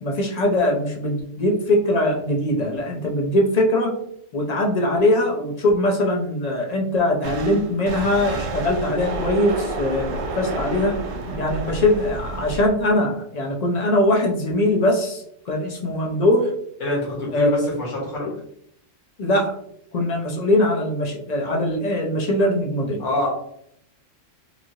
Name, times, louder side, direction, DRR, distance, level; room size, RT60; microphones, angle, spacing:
voice 1, 0.0-3.9 4.3-11.0 11.4-16.5 17.3-17.5 19.2-19.5 19.9-23.0, left 1 dB, 55° left, 0 dB, 0.4 m, -21 dB
sound 1, 7.2-12.7, right 3 dB, 70° right, 0.8 m, -30 dB
voice 2, 16.8-18.3 23.0-23.3, left 1 dB, 85° left, -5 dB, 1.5 m, -25 dB
3.0 x 2.5 x 2.7 m, 0.71 s
omnidirectional pair, 1.3 m